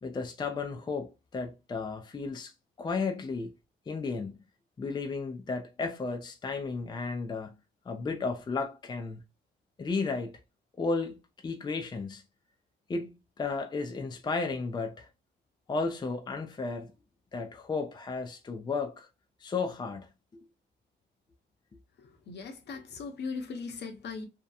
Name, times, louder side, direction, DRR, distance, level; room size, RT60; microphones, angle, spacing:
voice 1, 0.0-2.5 2.8-3.5 3.9-4.4 4.8-7.5 7.9-9.2 9.8-10.3 10.8-11.2 11.4-12.2 12.9-15.1 15.7-16.9 17.3-19.1 19.4-20.1, left 4 dB, 20° left, 0.4 m, -33 dB
voice 2, 22.0-24.3, left 4 dB, 60° left, 0.8 m, -39 dB
2.8 x 2.2 x 2.2 m
cardioid pair, 90°, 20 cm